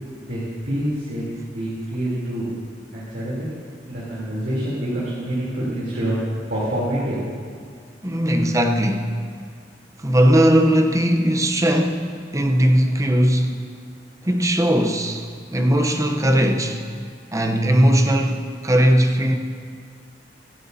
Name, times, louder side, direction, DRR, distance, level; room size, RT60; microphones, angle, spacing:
voice 1, 0.2-2.5 2.9-3.5 3.9-6.2 6.5-7.2, right 1 dB, 65° right, -9 dB, 3.4 m, -26 dB
voice 2, 8.0-9.2 10.0-13.7 14.2-15.3 15.5-16.8 17.3-19.4, equal, 20° right, 3 dB, 0.8 m, -18 dB
25.0 x 9.4 x 2.8 m, 2.2 s
head